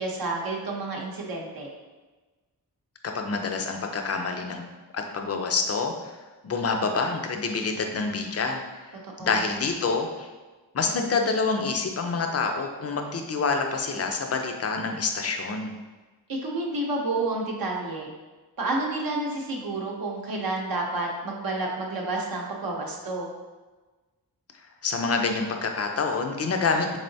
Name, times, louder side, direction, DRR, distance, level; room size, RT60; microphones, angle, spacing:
voice 1, 0.0-1.7 9.2-9.4 16.3-18.1 18.6-23.3, right 2 dB, 65° right, -1 dB, 0.7 m, -30 dB
voice 2, 3.0-4.6 4.9-6.1 6.4-10.3 10.7-15.7 24.6-27.0, left 4 dB, 40° left, 4 dB, 0.4 m, -27 dB
3.7 x 3.3 x 2.6 m, 1.3 s
wide cardioid pair, 115°, 38 cm